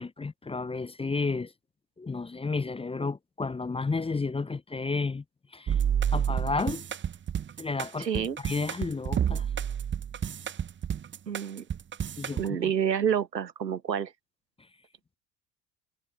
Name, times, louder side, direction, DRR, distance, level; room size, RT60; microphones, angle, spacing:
voice 1, 0.0-1.5 2.0-5.2 5.5-5.8 6.1-6.9 7.6-9.5 12.2-12.7, left 4 dB, 10° left, 0.7 m, -32 dB
sound 1, 5.7-12.5, right 8 dB, 25° right, 0.8 m, -30 dB
voice 2, 8.0-8.4 11.3-11.7 12.4-14.1, right 8 dB, 90° right, 1.3 m, -28 dB
figure-of-eight pair, 60°, 49 cm